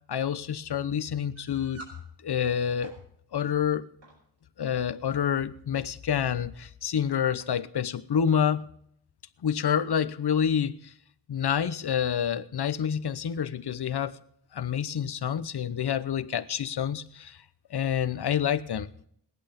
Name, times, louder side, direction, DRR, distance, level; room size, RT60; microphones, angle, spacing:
voice 1, 0.1-1.8 2.2-2.9 3.3-3.9 4.6-8.6 9.4-10.9 11.3-14.2 14.5-17.4 17.7-18.9, left 8 dB, 60° left, 13 dB, 0.9 m, -28 dB
sound 1, 1.4-2.0 2.6-3.0 4.0-4.2 4.9-5.3 6.1-6.2 6.5-6.6 7.4-7.6, right 1 dB, 90° right, 5.7 m, -48 dB
18.5 x 11.0 x 5.2 m, 0.68 s
wide cardioid pair, 120°, 43 cm